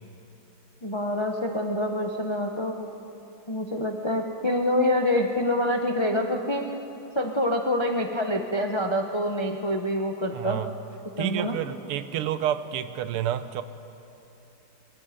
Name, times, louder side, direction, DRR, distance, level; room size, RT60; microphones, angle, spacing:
voice 1, 0.8-2.9 3.5-6.6 7.1-10.6 11.2-11.5, left 1 dB, 45° left, 3 dB, 0.3 m, -26 dB
voice 2, 10.3-10.7 11.2-13.6, right 11 dB, 85° right, 12 dB, 1.7 m, -29 dB
23.0 x 22.5 x 5.1 m, 3.0 s
omnidirectional pair, 2.4 m